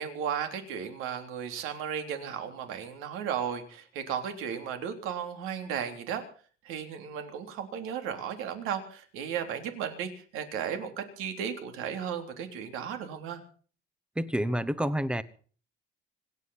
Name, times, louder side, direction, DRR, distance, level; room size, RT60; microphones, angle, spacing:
voice 1, 0.0-6.2 6.6-13.4, right 8 dB, 80° right, 6 dB, 3.5 m, -35 dB
voice 2, 14.2-15.2, equal, 5° right, 16 dB, 0.8 m, -28 dB
25.5 x 9.7 x 5.6 m, 0.43 s
cardioid pair, 160°, 21 cm